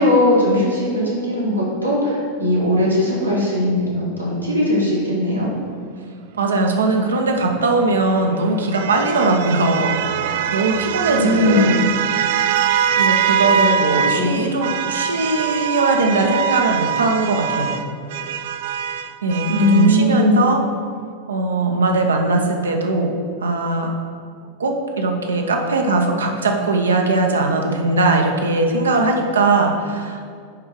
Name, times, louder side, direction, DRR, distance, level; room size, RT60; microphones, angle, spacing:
voice 1, 0.0-5.5 11.2-11.8 14.1-14.4 19.5-20.4, left 1 dB, 85° right, -6 dB, 1.9 m, -19 dB
voice 2, 6.3-10.0 10.5-11.8 13.0-17.8 19.2-20.6 21.3-23.9 24.6-30.2, right 2 dB, 70° right, 2 dB, 0.8 m, -20 dB
sound 1, 7.6-14.3 14.6-20.0, right 8 dB, 55° right, 0.3 m, -23 dB
9.5 x 3.6 x 4.7 m, 2.2 s
figure-of-eight pair, 90°, 0 cm